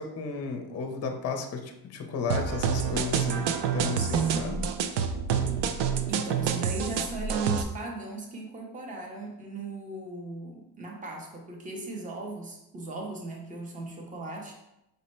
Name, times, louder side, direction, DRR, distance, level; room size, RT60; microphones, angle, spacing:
voice 1, 0.0-3.4 3.7-4.7, left 5 dB, 35° left, 4 dB, 0.5 m, -33 dB
sound 1, 2.3-7.6, right 7 dB, 75° right, 0.5 m, -28 dB
voice 2, 6.1-14.5, right 3 dB, 20° right, 0 dB, 0.6 m, -37 dB
5.3 x 2.1 x 4.2 m, 0.88 s
cardioid pair, 160°, 44 cm